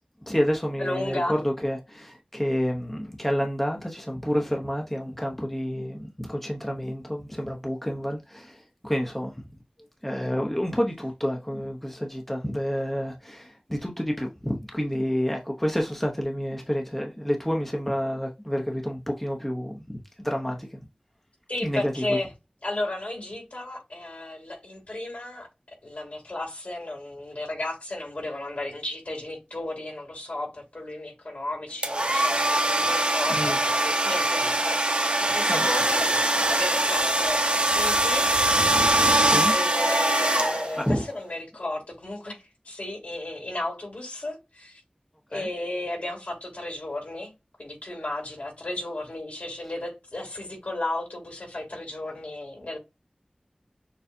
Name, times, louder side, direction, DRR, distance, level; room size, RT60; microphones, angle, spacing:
voice 1, 0.3-9.3 10.0-20.8 21.6-22.2 33.3-33.6 35.5-35.7 39.2-39.5 40.8-41.0 45.3-45.5, equal, 10° left, 0.9 m, -29 dB
voice 2, 0.8-1.3 21.5-22.3 22.6-25.5 25.8-36.1 36.5-38.3 39.5-44.8 45.3-47.3 47.6-52.8, left 2 dB, 65° left, 2.7 m, -34 dB
sound 1, 31.8-41.0, right 1 dB, 45° right, 1.0 m, -23 dB
6.7 x 2.3 x 2.7 m
wide cardioid pair, 45°, 3 cm